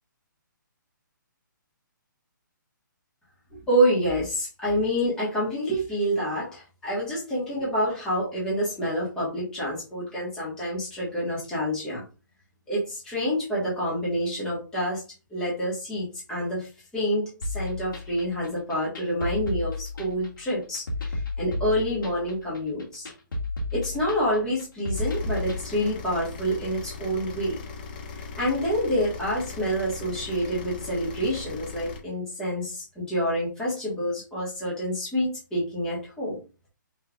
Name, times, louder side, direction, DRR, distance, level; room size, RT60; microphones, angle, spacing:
voice 1, 3.7-12.0 12.7-15.0 15.3-23.1 23.7-27.6 28.1-36.4, equal, 5° left, -7 dB, 1.3 m, -27 dB
sound 1, 17.4-25.6, left 2 dB, 80° left, 2.0 m, -32 dB
sound 2, 24.9-32.0, left 4 dB, 25° left, 0.5 m, -39 dB
5.4 x 3.3 x 2.4 m, 0.32 s
hypercardioid pair, 165°, 11 cm